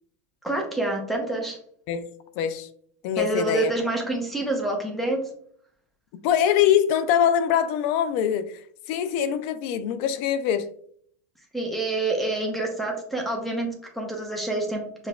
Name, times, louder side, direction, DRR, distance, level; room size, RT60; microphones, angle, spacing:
voice 1, 0.4-1.6 3.2-5.2 11.5-15.1, right 2 dB, ahead, 1 dB, 0.7 m, -27 dB
voice 2, 2.4-2.7 3.0-3.7 6.2-8.6 8.9-10.7, left 9 dB, 55° left, 11 dB, 0.4 m, -23 dB
5.9 x 2.3 x 2.3 m, 0.62 s
supercardioid pair, 135°, 9 cm